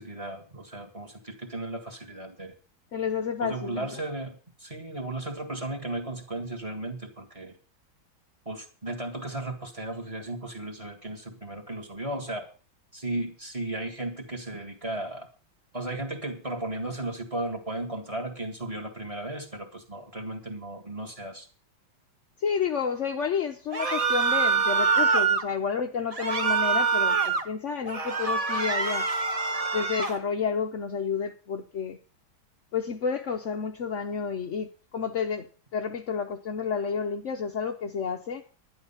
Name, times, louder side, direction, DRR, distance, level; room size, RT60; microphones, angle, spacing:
voice 1, 0.0-2.5 3.4-7.5 8.5-12.5 12.9-15.3 15.7-21.5, right 2 dB, 15° right, 1.7 m, -35 dB
voice 2, 2.9-3.9 22.4-29.1 29.7-32.0 32.7-35.5 35.7-38.4, left 6 dB, 85° left, 0.6 m, -30 dB
sound 1, 23.7-25.4 26.1-27.4 27.9-30.2, right 5 dB, 35° right, 0.6 m, -25 dB
11.0 x 10.5 x 5.6 m
omnidirectional pair, 2.2 m